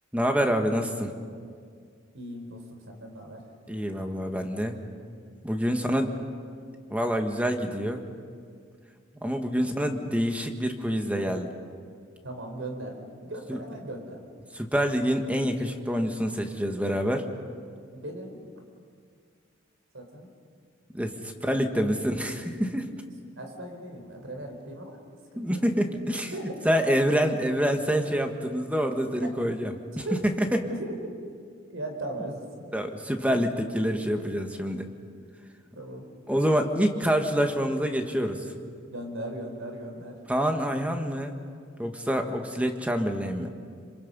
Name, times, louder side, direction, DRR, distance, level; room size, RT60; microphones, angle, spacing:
voice 1, 0.1-1.1 3.7-4.8 5.4-6.1 6.9-8.0 9.2-11.5 13.5-13.6 14.5-17.3 20.9-22.9 25.3-26.3 26.6-30.6 32.7-34.9 36.3-38.4 40.3-41.3 41.8-43.5, equal, 5° right, 5 dB, 1.6 m, -26 dB
voice 2, 2.1-3.5 6.1-6.2 12.2-14.2 17.9-18.4 19.9-20.3 21.5-21.8 23.3-25.0 25.3-25.6 26.3-26.5 29.2-29.3 30.0-30.9 31.7-32.7 35.7-36.1 38.9-40.2, right 1 dB, 90° right, 3 dB, 4.1 m, -38 dB
27.5 x 26.0 x 5.5 m, 2.1 s
head